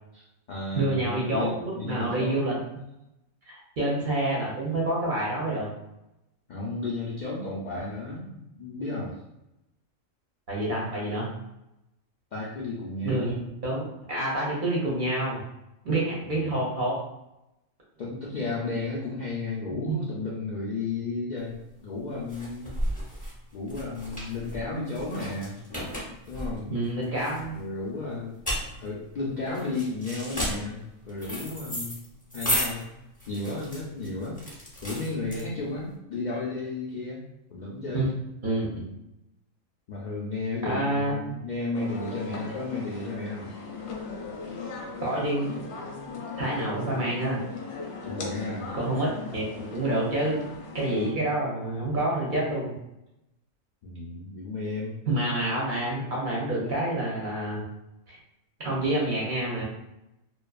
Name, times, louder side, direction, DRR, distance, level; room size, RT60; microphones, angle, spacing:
voice 1, 0.1-2.5 6.5-9.2 12.3-13.4 16.3-16.6 18.0-22.8 23.5-25.6 26.3-26.7 27.5-28.4 28.8-32.0 32.3-32.9 33.3-34.4 34.8-37.2 37.5-38.1 39.9-43.5 48.0-48.7 53.8-54.9, left 3 dB, 90° left, -6 dB, 0.4 m, -33 dB
voice 2, 0.7-2.6 3.5-5.7 10.5-11.3 13.0-15.4 15.8-17.0 19.9-20.0 26.7-27.5 37.9-38.0 38.4-38.9 40.6-41.3 45.0-45.5 46.4-47.4 48.7-50.4 50.7-52.7 55.1-57.6 58.1-58.2 58.6-59.6, right 1 dB, 50° right, -5 dB, 0.7 m, -28 dB
sound 1, 21.5-35.9, equal, 10° left, 0.4 m, -34 dB
sound 2, 41.7-51.1, left 4 dB, 65° left, 0.7 m, -38 dB
2.6 x 2.2 x 2.3 m, 0.89 s
omnidirectional pair, 1.4 m